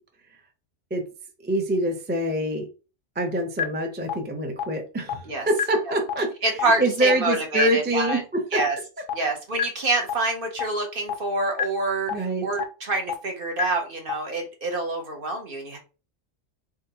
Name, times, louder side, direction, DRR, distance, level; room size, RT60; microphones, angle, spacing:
voice 1, 1.4-2.7 3.2-8.6 9.2-9.3 12.1-12.5, right 1 dB, 10° right, 3 dB, 0.5 m, -25 dB
sound 1, 3.6-3.7 4.1-4.2 4.6-4.7 5.1-5.2 5.6-5.7 6.1-6.2 6.6-6.7 7.1-7.2 7.6-7.7 8.1-8.2 8.6-8.7 9.1-9.2 9.6-9.7 10.1-10.2 10.6-10.7 11.1-11.2 11.6-11.7 12.1-12.2 12.6-12.7 13.1-13.2 13.6-13.7 14.1-14.2, left 9 dB, 60° left, 0.7 m, -25 dB
voice 2, 6.4-8.2 8.5-8.8 9.1-15.8, right 2 dB, 50° right, 3 dB, 1.0 m, -26 dB
3.7 x 3.6 x 2.8 m, 0.33 s
omnidirectional pair, 1.3 m